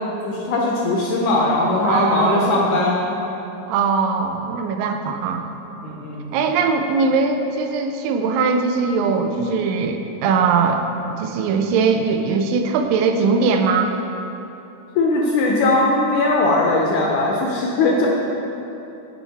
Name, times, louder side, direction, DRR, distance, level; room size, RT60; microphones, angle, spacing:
voice 1, 0.2-3.1 5.8-6.3 15.0-18.1, left 2 dB, 75° left, -2 dB, 1.8 m, -19 dB
voice 2, 1.8-2.5 3.7-5.4 6.3-10.8 11.2-13.9, right 5 dB, 85° right, 5 dB, 2.2 m, -20 dB
9.3 x 4.6 x 4.1 m, 2.9 s
omnidirectional pair, 4.0 m